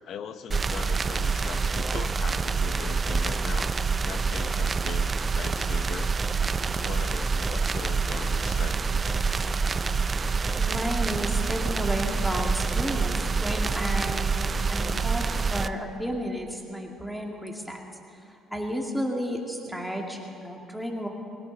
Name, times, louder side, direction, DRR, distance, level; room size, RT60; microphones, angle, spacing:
voice 1, 0.0-3.8 4.0-6.1 6.8-9.1, left 7 dB, 60° left, 11 dB, 0.9 m, -40 dB
sound 1, 0.5-15.7, right 4 dB, 30° right, 0.5 m, -26 dB
voice 2, 10.5-15.2 15.5-17.8 18.5-21.1, equal, ahead, 0 dB, 2.2 m, -32 dB
20.0 x 17.5 x 4.0 m, 2.7 s
cardioid pair, 100°, 0 cm